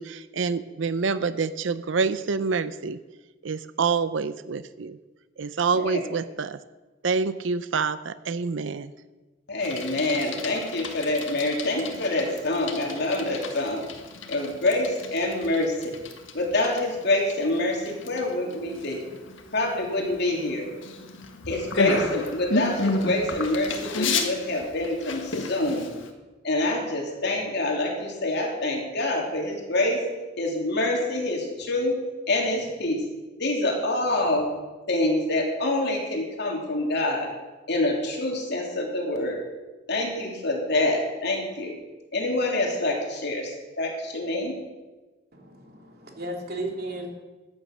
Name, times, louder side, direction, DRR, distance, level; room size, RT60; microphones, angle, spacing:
voice 1, 0.0-3.0 3.4-5.0 5.4-6.6 7.0-8.9, right 5 dB, 70° right, 14 dB, 0.5 m, -27 dB
voice 2, 9.5-13.8 14.3-15.9 16.3-19.0 19.5-20.7 21.5-25.9 26.4-30.0 30.4-32.0 32.3-33.0 33.4-34.5 34.9-37.3 37.7-39.4 39.9-41.7 42.1-44.6, left 2 dB, 60° left, 0 dB, 3.1 m, -26 dB
Bicycle, 9.6-26.1, left 3 dB, 75° left, 1.7 m, -33 dB
voice 3, 45.3-47.1, right 1 dB, 50° right, 1 dB, 3.0 m, -34 dB
15.0 x 9.9 x 6.5 m, 1.2 s
head